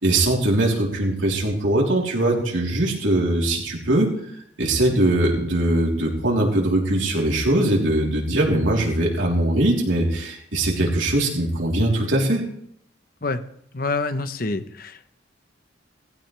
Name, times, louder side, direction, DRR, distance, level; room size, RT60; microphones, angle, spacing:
voice 1, 0.0-4.1 4.6-12.4, right 1 dB, 90° right, -2 dB, 3.6 m, -21 dB
voice 2, 13.7-15.1, left 3 dB, 50° left, 10 dB, 0.9 m, -27 dB
16.5 x 15.5 x 3.4 m, 0.70 s
head